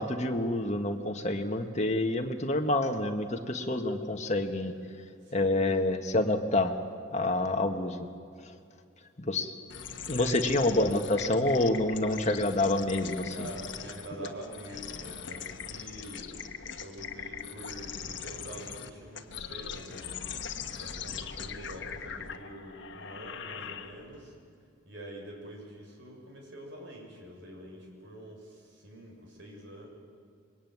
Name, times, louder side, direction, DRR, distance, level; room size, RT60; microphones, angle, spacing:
voice 1, 0.0-4.7 5.3-6.7 7.1-8.1 9.2-9.5 10.1-13.5, left 2 dB, 35° left, 5 dB, 1.8 m, -28 dB
voice 2, 5.2-5.7 10.1-10.5 13.3-16.4 16.8-20.2 20.7-24.3 24.9-29.9, right 1 dB, 65° right, 0 dB, 7.1 m, -46 dB
sound 1, 9.7-24.2, left 7 dB, 65° left, 1.4 m, -41 dB
25.5 x 22.5 x 9.6 m, 2.3 s
head